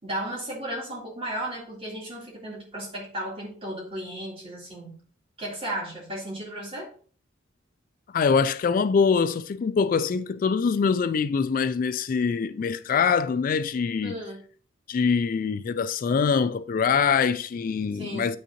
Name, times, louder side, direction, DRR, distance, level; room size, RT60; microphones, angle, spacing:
voice 1, 0.0-5.0 5.4-6.9 14.0-14.4 17.9-18.3, right 1 dB, 30° right, 3.5 m, -34 dB
voice 2, 8.1-14.2 14.9-18.4, left 5 dB, 45° left, 0.3 m, -24 dB
8.4 x 6.4 x 2.9 m
head